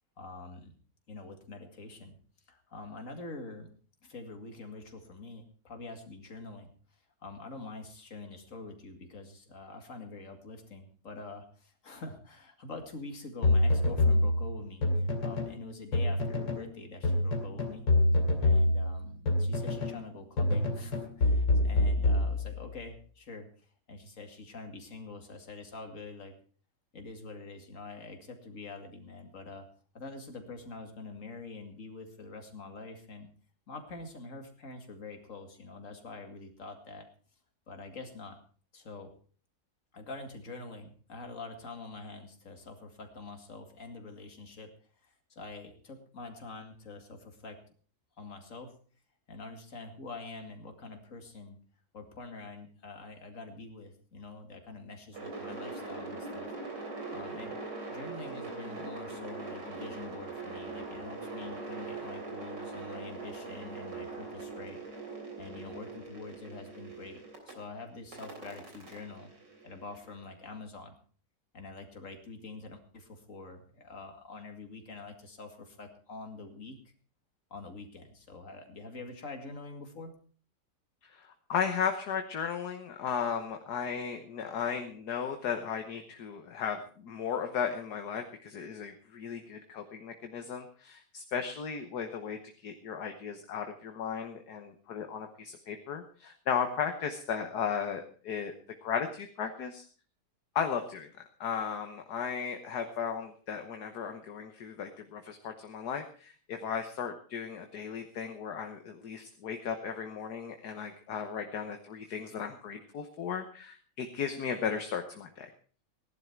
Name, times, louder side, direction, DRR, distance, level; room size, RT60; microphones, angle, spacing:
voice 1, 0.2-0.7 1.1-2.1 2.5-3.7 4.0-6.7 7.2-17.9 18.4-26.3 26.9-29.7 29.9-33.3 33.7-37.1 37.7-38.4 38.7-39.1 39.9-44.7 45.0-47.6 48.2-48.7 49.3-51.6 51.9-56.5 57.1-57.6 57.9-64.8 65.4-67.2 67.5-69.3 69.6-70.9 71.5-76.8 77.5-80.1, left 3 dB, 45° left, 5 dB, 2.6 m, -45 dB
sound 1, 13.4-15.6 15.9-16.7 17.0-20.0 20.4-22.8, left 2 dB, 90° left, 3.4 m, -26 dB
sound 2, 55.1-67.5 68.1-70.2, right 3 dB, 70° right, 4.1 m, -41 dB
voice 2, 81.0-98.5 98.8-99.8 100.6-101.1 101.4-115.5, left 7 dB, 65° left, 6 dB, 1.7 m, -35 dB
17.5 x 11.5 x 4.6 m, 0.42 s
omnidirectional pair, 1.9 m